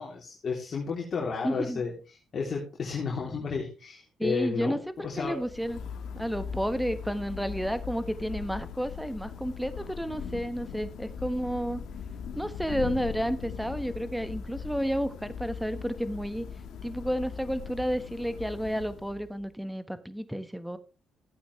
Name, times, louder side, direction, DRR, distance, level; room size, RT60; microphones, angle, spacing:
voice 1, 0.0-1.9 2.3-5.4, left 5 dB, 50° left, -2 dB, 3.3 m, -32 dB
voice 2, 1.4-1.8 4.2-5.8 6.1-11.8 12.4-16.5 16.8-20.8, equal, ahead, 11 dB, 1.4 m, -31 dB
Thunder / Rain, 5.1-19.5, left 6 dB, 75° left, 1.6 m, -40 dB
15.0 x 8.6 x 3.3 m, 0.32 s
cardioid pair, 90°, 0 cm